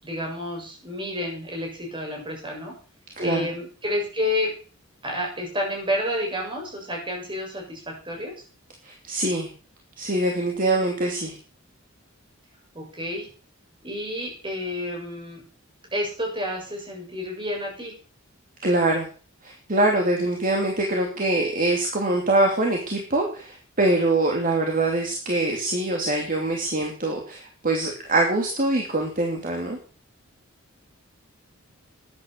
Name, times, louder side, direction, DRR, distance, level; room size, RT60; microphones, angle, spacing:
voice 1, 0.0-2.7 3.2-4.5 5.0-8.3 12.7-13.3 13.8-15.4 15.9-17.9, left 1 dB, 25° right, 0 dB, 7.2 m, -30 dB
voice 2, 3.2-3.5 8.8-9.5 10.0-11.3 18.6-19.1 19.4-29.8, right 2 dB, 40° right, 1 dB, 2.9 m, -24 dB
13.5 x 10.5 x 6.7 m, 0.39 s
head